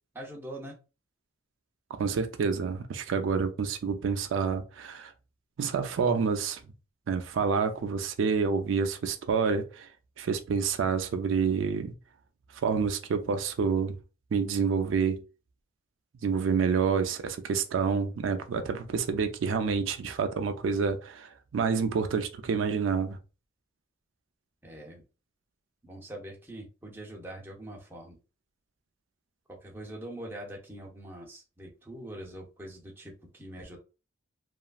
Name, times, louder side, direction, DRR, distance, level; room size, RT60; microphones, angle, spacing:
voice 1, 0.1-0.8 24.6-25.0 25.8-28.2 29.5-33.8, right 1 dB, 10° right, 0.6 m, -43 dB
voice 2, 1.9-5.1 5.6-6.6 7.1-9.9 10.2-11.9 12.6-14.0 14.3-15.2 16.2-23.2, right 5 dB, 75° right, 0.4 m, -28 dB
2.9 x 2.4 x 2.3 m
head